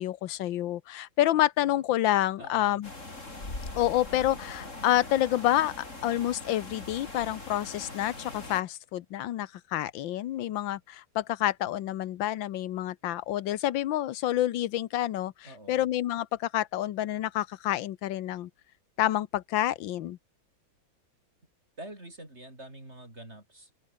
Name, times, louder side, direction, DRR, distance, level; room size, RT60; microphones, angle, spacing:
voice 1, 0.0-2.9 3.7-5.7 6.0-18.5 19.0-20.2, left 13 dB, 70° left, 1.6 m, -28 dB
voice 2, 2.4-2.8 15.4-15.9 21.8-23.9, right 1 dB, 30° right, 6.3 m, -46 dB
sound 1, 2.8-8.6, left 2 dB, 35° left, 5.1 m, -41 dB
omnidirectional pair, 2.2 m